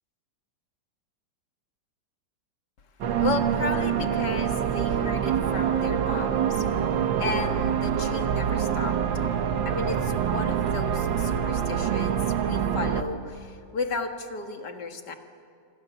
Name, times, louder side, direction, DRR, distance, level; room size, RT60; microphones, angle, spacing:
sound 1, 3.0-13.0, right 8 dB, 80° right, 1.9 m, -25 dB
voice 1, 3.2-9.0 9.7-15.2, left 4 dB, 65° left, 5 dB, 2.2 m, -34 dB
26.5 x 25.5 x 7.1 m, 2.4 s
omnidirectional pair, 2.0 m